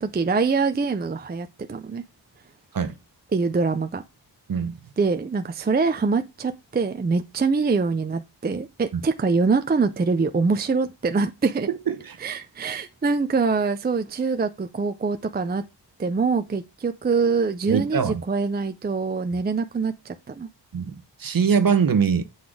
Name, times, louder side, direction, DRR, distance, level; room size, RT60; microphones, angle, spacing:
voice 1, 0.0-2.0 3.3-4.0 5.0-11.7 12.2-15.6 16.0-20.5, right 4 dB, 20° right, 0.5 m, -24 dB
voice 2, 11.7-12.2 17.7-18.2 20.7-20.9 21.2-22.2, right 6 dB, 50° right, 1.0 m, -22 dB
7.8 x 4.0 x 4.8 m
wide cardioid pair, 135°, 44 cm